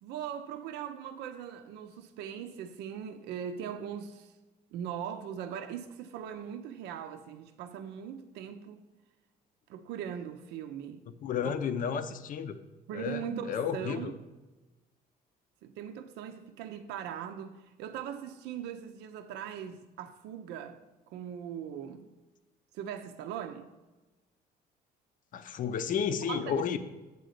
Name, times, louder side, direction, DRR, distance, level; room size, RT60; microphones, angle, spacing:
voice 1, 0.0-4.3 4.7-8.8 9.7-11.0 11.4-11.6 12.9-14.1 15.6-20.8 21.1-22.1 22.7-23.7 26.3-26.6, right 9 dB, 85° right, 0.5 m, -40 dB
voice 2, 11.2-12.5 12.9-13.2 13.5-14.1 25.3-26.8, left 7 dB, 55° left, 0.6 m, -32 dB
8.3 x 3.9 x 6.5 m
cardioid pair, 110°, 17 cm